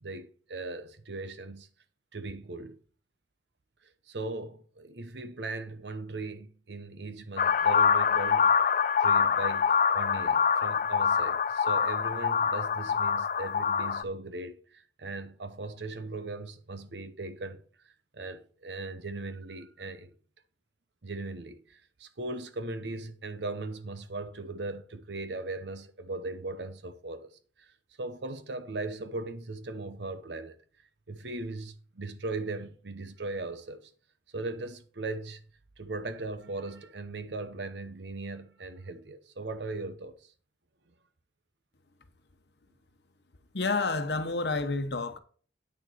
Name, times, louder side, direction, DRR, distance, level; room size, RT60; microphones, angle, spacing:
voice 1, 0.0-1.7 2.1-2.8 3.8-8.5 9.0-20.1 21.0-27.3 27.6-27.7 28.0-30.6 31.1-33.9 34.3-35.4 35.8-40.3, right 2 dB, 75° right, 0.9 m, -38 dB
sound 1, 7.4-14.0, left 6 dB, 45° left, 0.3 m, -25 dB
voice 2, 43.5-45.2, left 3 dB, 70° left, 1.0 m, -29 dB
8.8 x 6.6 x 4.4 m
head